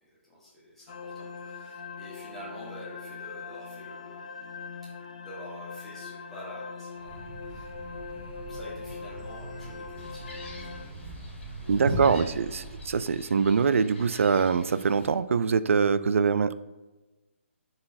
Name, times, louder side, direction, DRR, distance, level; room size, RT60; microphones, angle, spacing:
voice 1, 0.0-4.3 4.8-4.9 5.2-7.7 8.5-11.0 11.4-12.8, equal, ahead, -9 dB, 0.9 m, -47 dB
sound 1, 0.9-10.9, left 5 dB, 30° left, 0.4 m, -41 dB
Thump thud, 7.0-13.2, right 1 dB, 60° right, 1.0 m, -39 dB
Gull seagull, 10.0-15.1, left 2 dB, 60° left, 1.7 m, -48 dB
voice 2, 11.7-16.5, right 5 dB, 75° right, 15 dB, 0.3 m, -24 dB
9.6 x 4.0 x 2.6 m, 1.1 s
hypercardioid pair, 180°, 7 cm